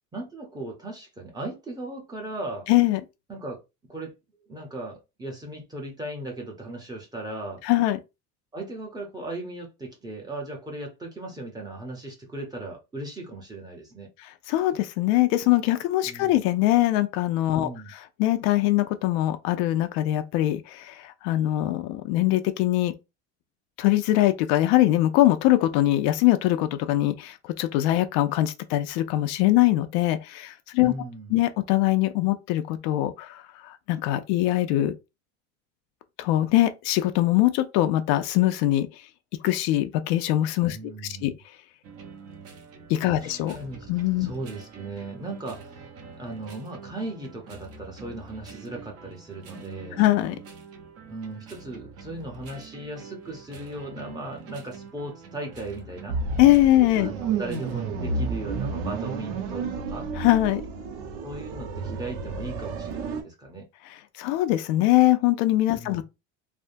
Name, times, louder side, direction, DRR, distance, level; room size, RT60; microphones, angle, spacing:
voice 1, 0.1-2.7 3.3-3.6 3.9-4.1 4.5-7.6 8.5-14.1 16.1-16.4 17.5-17.9 30.8-31.4 40.7-41.3 43.0-43.9 44.2-45.8 46.1-50.0 51.1-56.2 57.0-60.1 61.2-63.7 65.7-66.0, right 2 dB, 10° right, 0.7 m, -37 dB
voice 2, 2.7-3.0 7.6-8.0 14.5-22.9 23.8-30.9 31.3-34.9 36.2-38.9 39.4-40.8 41.0-41.3 42.9-43.6 43.9-44.3 50.0-50.4 56.4-57.1 60.2-60.6 64.2-66.0, left 15 dB, 75° left, 0.5 m, -22 dB
sound 1, 41.8-57.9, right 4 dB, 40° right, 0.7 m, -45 dB
sound 2, 56.1-63.2, right 4 dB, 85° right, 0.8 m, -31 dB
3.4 x 2.1 x 2.6 m
cardioid pair, 155°, 36 cm